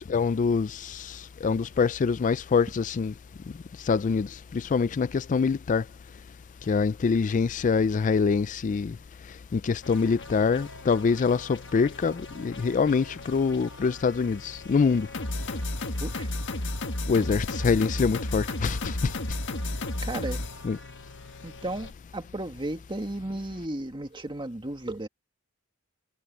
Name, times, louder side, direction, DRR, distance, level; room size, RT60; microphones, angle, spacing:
voice 1, 0.1-3.1 3.9-4.3 4.5-5.8 6.7-8.9 9.5-15.1 17.1-19.1 20.6-20.8, left 5 dB, 35° left, 0.3 m, -25 dB
sound 1, 9.8-21.9, left 2 dB, 60° left, 1.6 m, -34 dB
voice 2, 20.0-20.4 21.4-25.1, right 1 dB, 25° right, 2.1 m, -34 dB
head